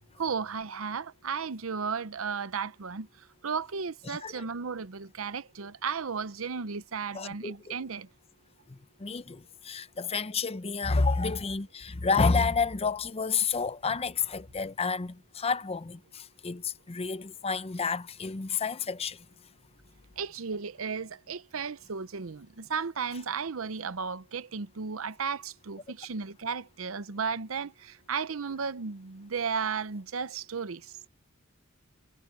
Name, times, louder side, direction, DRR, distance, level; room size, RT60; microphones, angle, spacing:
voice 1, 0.2-3.1 3.4-8.1 20.2-30.8, right 5 dB, 75° right, 0.7 m, -34 dB
voice 2, 4.1-4.4 7.1-7.6 8.7-19.2, left 4 dB, 30° left, 0.6 m, -30 dB
head